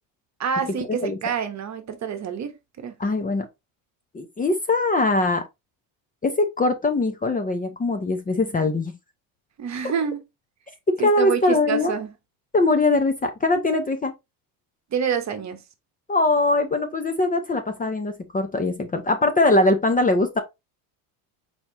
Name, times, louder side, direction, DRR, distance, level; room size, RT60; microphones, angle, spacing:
voice 1, 0.4-2.9 9.6-10.2 11.0-12.1 14.9-15.6, right 7 dB, 40° right, 1.0 m, -27 dB
voice 2, 3.0-3.5 4.1-5.4 6.2-8.9 11.0-11.9 12.5-14.1 16.1-20.4, left 2 dB, 20° left, 0.7 m, -21 dB
4.4 x 4.2 x 2.7 m
cardioid pair, 115°, 44 cm